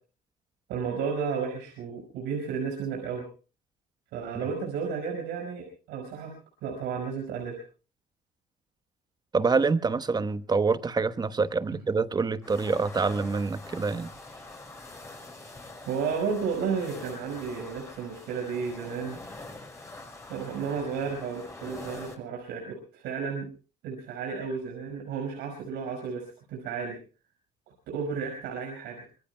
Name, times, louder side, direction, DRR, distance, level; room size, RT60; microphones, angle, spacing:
voice 1, 0.7-3.2 4.1-6.3 6.6-7.6 15.9-19.2 20.3-23.5 23.8-27.0 27.9-29.1, right 6 dB, 90° right, 5.4 m, -32 dB
voice 2, 9.3-14.1, right 4 dB, 25° right, 1.0 m, -26 dB
sound 1, 12.4-22.1, left 2 dB, 15° left, 6.0 m, -44 dB
25.5 x 22.5 x 2.2 m
cardioid pair, 110°, 17 cm